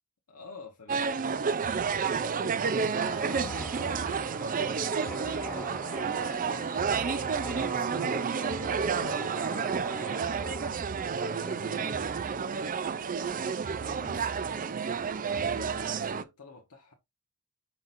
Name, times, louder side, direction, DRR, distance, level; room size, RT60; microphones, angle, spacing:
voice 1, 0.3-10.8 11.1-13.5 13.8-14.3 15.3-16.9, left 4 dB, 85° left, 1.3 m, -50 dB
sound 1, 0.9-16.2, right 6 dB, 40° right, 0.5 m, -30 dB
sound 2, 2.9-10.8, left 1 dB, 5° left, 1.0 m, -44 dB
6.1 x 5.8 x 2.6 m
head